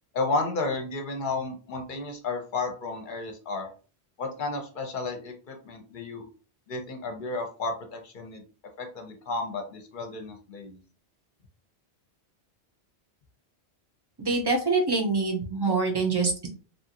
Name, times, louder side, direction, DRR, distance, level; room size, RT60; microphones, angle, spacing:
voice 1, 0.1-3.7 4.2-6.2 6.7-8.4 8.8-10.8, left 3 dB, 55° left, 5 dB, 0.8 m, -32 dB
voice 2, 14.2-16.5, right 3 dB, 25° right, 2 dB, 0.6 m, -25 dB
3.1 x 2.4 x 2.8 m, 0.37 s
omnidirectional pair, 1.1 m